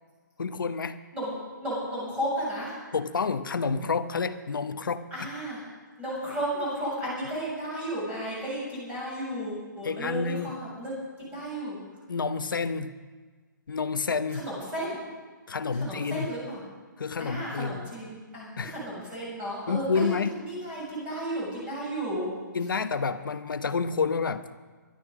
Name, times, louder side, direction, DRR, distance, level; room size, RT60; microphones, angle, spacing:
voice 1, 0.4-1.0 2.9-5.3 9.8-10.5 12.1-12.9 13.7-14.4 15.5-16.3 17.0-17.8 18.6-18.7 19.7-20.4 22.5-24.5, left 5 dB, 85° left, 10 dB, 1.2 m, -29 dB
voice 2, 1.1-2.8 5.1-5.6 6.0-10.9 11.2-11.8 14.3-15.0 15.7-16.6 17.2-22.3, right 1 dB, 10° right, -7 dB, 6.5 m, -33 dB
21.0 x 12.0 x 5.1 m, 1.4 s
hypercardioid pair, 165°, 11 cm